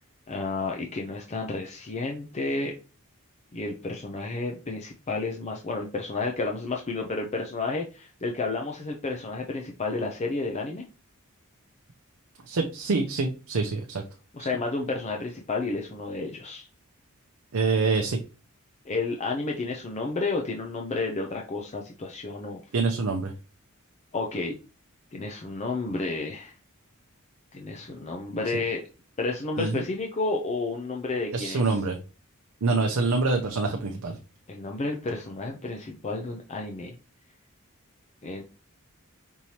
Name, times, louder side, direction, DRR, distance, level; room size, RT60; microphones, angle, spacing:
voice 1, 0.3-2.7 3.5-10.8 14.3-16.7 18.9-22.6 24.1-24.6 25.1-26.5 27.5-28.8 29.2-31.8 34.5-37.0 38.2-38.4, left 3 dB, 30° left, 1 dB, 0.5 m, -31 dB
voice 2, 12.5-14.0 14.4-14.5 17.5-18.2 22.7-23.3 29.6-29.8 31.3-32.0 32.6-34.2, right 3 dB, 80° right, 3 dB, 0.6 m, -26 dB
5.4 x 3.1 x 2.8 m, 0.34 s
head